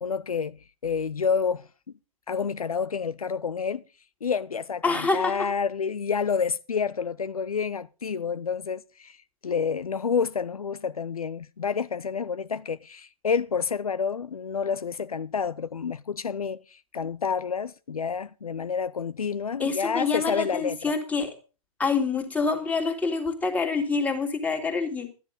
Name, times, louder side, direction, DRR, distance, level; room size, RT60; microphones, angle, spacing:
voice 1, 0.0-1.7 2.3-3.8 4.2-9.2 9.4-20.9, left 6 dB, 80° left, 0.6 m, -29 dB
voice 2, 4.8-5.5 19.6-21.3 21.8-25.1, left 4 dB, 10° left, 2.5 m, -26 dB
13.0 x 10.5 x 5.2 m
figure-of-eight pair, 120°, 18 cm